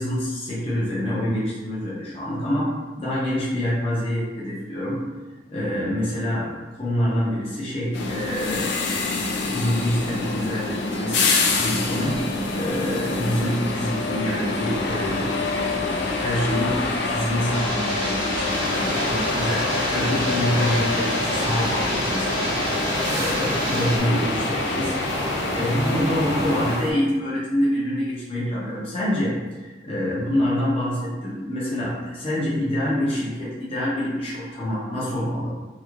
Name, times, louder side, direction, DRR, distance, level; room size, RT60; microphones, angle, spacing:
voice 1, 0.0-5.0 5.5-6.5 6.8-8.8 9.5-11.2 11.6-15.4 15.8-24.9 25.5-35.5, equal, 30° left, -8 dB, 0.7 m, -26 dB
sound 1, 7.9-26.8, left 3 dB, 65° left, 0.4 m, -26 dB
sound 2, 17.5-24.0, right 1 dB, 65° right, 1.0 m, -32 dB
sound 3, 18.5-26.9, equal, 15° right, 0.6 m, -30 dB
3.0 x 2.7 x 2.4 m, 1.2 s
head